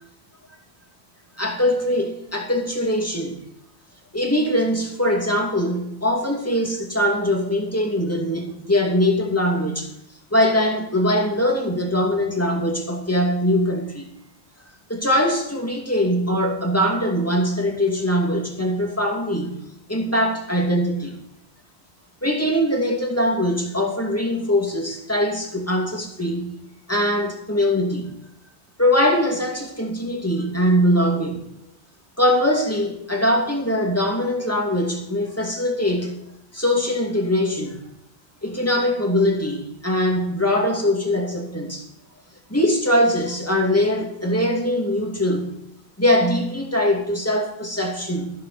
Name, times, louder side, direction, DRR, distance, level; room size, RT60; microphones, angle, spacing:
voice 1, 1.4-3.3 4.1-9.9 10.3-14.0 14.9-19.6 19.9-21.1 22.2-26.6 26.9-28.1 28.8-31.4 32.2-36.2 36.5-37.8 38.4-41.8 42.5-45.5 46.0-48.3, left 1 dB, 15° left, 1 dB, 2.5 m, -22 dB
14.5 x 7.3 x 7.0 m, 0.79 s
omnidirectional pair, 1.1 m